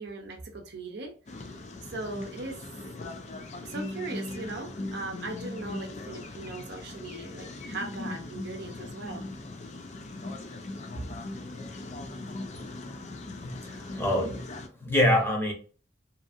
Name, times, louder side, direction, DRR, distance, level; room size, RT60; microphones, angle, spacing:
voice 1, 0.0-1.5 1.9-2.6 3.6-9.3 10.9-11.0, right 2 dB, 60° right, 0.7 m, -39 dB
sound 1, 1.3-14.7, left 2 dB, 40° left, 0.4 m, -39 dB
voice 2, 13.4-14.4 14.8-15.5, left 1 dB, 15° left, 0.9 m, -25 dB
2.7 x 2.6 x 2.5 m
head